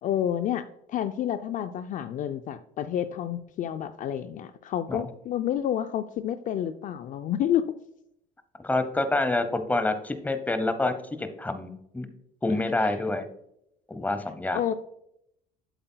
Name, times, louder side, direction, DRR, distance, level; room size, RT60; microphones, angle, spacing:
voice 1, 0.0-7.7 12.8-12.9 14.5-14.7, left 10 dB, 50° left, 10 dB, 0.4 m, -29 dB
voice 2, 8.6-10.9 11.2-12.1 12.4-13.3 13.9-14.7, left 2 dB, 10° left, 9 dB, 0.8 m, -27 dB
7.9 x 7.7 x 2.2 m, 0.76 s
supercardioid pair, 95°, 18 cm